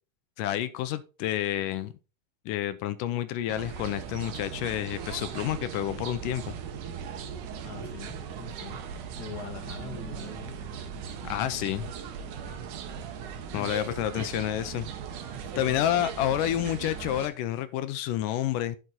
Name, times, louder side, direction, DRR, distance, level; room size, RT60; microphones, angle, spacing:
voice 1, 0.4-1.9 2.5-6.5 11.2-11.9 13.5-14.9 15.6-18.8, left 12 dB, 80° left, 2.2 m, -29 dB
sound 1, 3.5-17.3, right 7 dB, 70° right, 2.4 m, -38 dB
voice 2, 7.6-8.8 9.2-10.5 13.5-13.8 14.2-14.3 15.3-15.7, left 5 dB, 40° left, 1.6 m, -42 dB
11.5 x 5.9 x 4.0 m
omnidirectional pair, 3.9 m